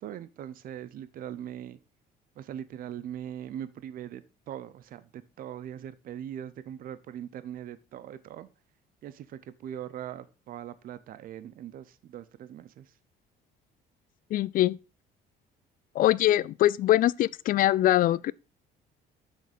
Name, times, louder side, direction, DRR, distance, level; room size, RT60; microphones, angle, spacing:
voice 1, 0.0-1.8 2.4-8.5 9.0-12.9, right 10 dB, 60° right, 0.6 m, -41 dB
voice 2, 14.3-14.8 16.0-18.3, left 14 dB, 55° left, 0.4 m, -23 dB
6.6 x 6.5 x 5.0 m
cardioid pair, 110°, 17 cm